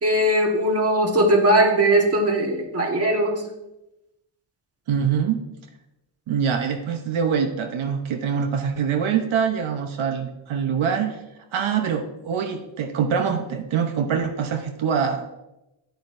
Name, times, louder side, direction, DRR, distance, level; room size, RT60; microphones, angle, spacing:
voice 1, 0.0-3.4, right 1 dB, 30° right, 3 dB, 1.4 m, -19 dB
voice 2, 4.9-5.4 6.3-11.2 11.5-15.3, right 7 dB, 80° right, 5 dB, 0.9 m, -24 dB
10.5 x 9.3 x 2.6 m, 0.93 s
cardioid pair, 100°, 47 cm